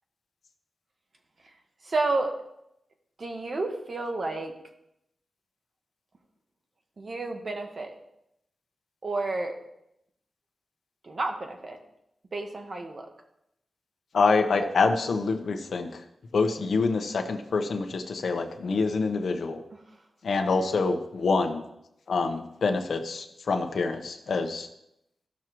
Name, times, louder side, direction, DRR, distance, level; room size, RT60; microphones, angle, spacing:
voice 1, 1.8-2.4 3.2-4.5 7.0-7.9 9.0-9.6 11.0-11.8 12.3-13.1, right 2 dB, 45° right, 3 dB, 1.4 m, -30 dB
voice 2, 14.1-16.0 16.3-19.6 20.2-21.6 22.1-24.7, left 4 dB, 70° left, 4 dB, 0.9 m, -26 dB
15.5 x 6.1 x 3.0 m, 0.81 s
wide cardioid pair, 95°, 0 cm